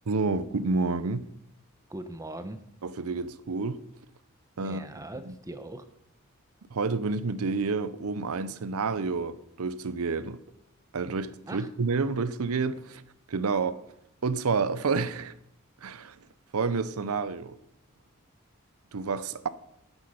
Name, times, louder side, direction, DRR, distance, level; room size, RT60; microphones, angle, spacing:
voice 1, 0.1-1.3 2.8-3.8 4.6-4.8 5.3-5.4 6.7-10.4 10.9-13.0 13.3-13.8 14.2-15.3 15.8-16.2 16.5-17.6 18.9-19.5, right 4 dB, 90° right, 0.6 m, -29 dB
voice 2, 1.9-2.6 4.6-5.8 11.5-11.7, right 1 dB, 15° right, 0.7 m, -40 dB
10.5 x 7.9 x 5.5 m
head